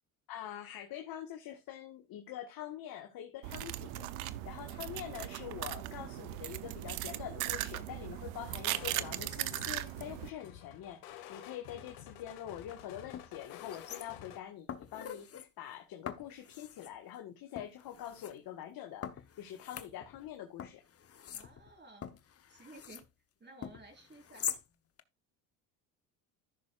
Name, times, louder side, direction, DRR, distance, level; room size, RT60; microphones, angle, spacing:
voice 1, 0.3-20.8, left 11 dB, 60° left, 1.5 m, -45 dB
sound 1, 3.4-10.3, right 15 dB, 90° right, 0.7 m, -38 dB
sound 2, 8.7-14.4, left 11 dB, 85° left, 1.5 m, -51 dB
sound 3, 12.6-12.7 13.1-14.4 14.7-15.5 16.1-16.9 17.6-18.3 19.0-20.3 20.6-23.1 23.6-24.6 25.0-25.1, left 8 dB, 35° left, 1.0 m, -44 dB
voice 2, 21.3-22.1 22.5-23.0 23.4-24.6, right 2 dB, 25° right, 4.5 m, -54 dB
14.5 x 6.3 x 2.4 m
supercardioid pair, 80°, 41 cm